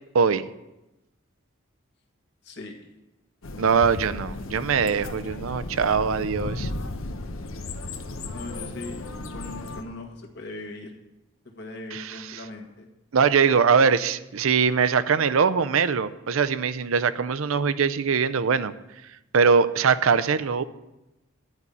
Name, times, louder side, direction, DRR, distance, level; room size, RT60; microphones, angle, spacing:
voice 1, 2.4-2.8 8.3-10.9 11.5-12.9, left 2 dB, 55° left, 1 dB, 1.6 m, -39 dB
sound 1, 3.4-9.8, left 2 dB, 75° left, 0.8 m, -35 dB
voice 2, 3.6-6.7 11.9-12.4 13.1-18.7 19.3-20.6, right 6 dB, 75° right, 13 dB, 0.5 m, -22 dB
11.0 x 5.4 x 8.4 m, 0.97 s
head